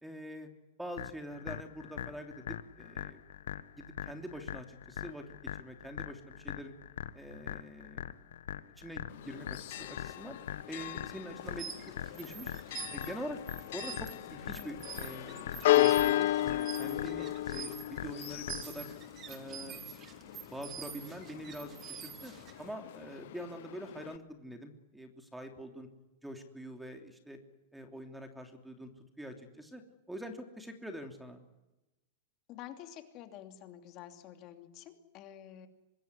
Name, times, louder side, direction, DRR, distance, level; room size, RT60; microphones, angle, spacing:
voice 1, 0.0-0.5 0.8-3.2 3.7-5.3 5.6-6.7 7.1-8.1 8.8-10.4 10.7-12.5 12.9-18.9 19.3-19.8 20.5-22.3 22.6-25.9 26.2-27.4 27.7-28.9 29.2-29.8 30.1-31.4, equal, 5° right, 5 dB, 3.0 m, -45 dB
sound 1, 1.0-19.0, left 10 dB, 85° left, 1.5 m, -43 dB
Church bell, 9.1-24.2, left 15 dB, 65° left, 0.9 m, -35 dB
sound 2, 11.4-22.7, right 8 dB, 25° right, 3.2 m, -47 dB
voice 2, 32.5-35.7, left 11 dB, 40° left, 6 dB, 2.8 m, -49 dB
25.5 x 21.0 x 10.0 m, 0.99 s
supercardioid pair, 150°, 0 cm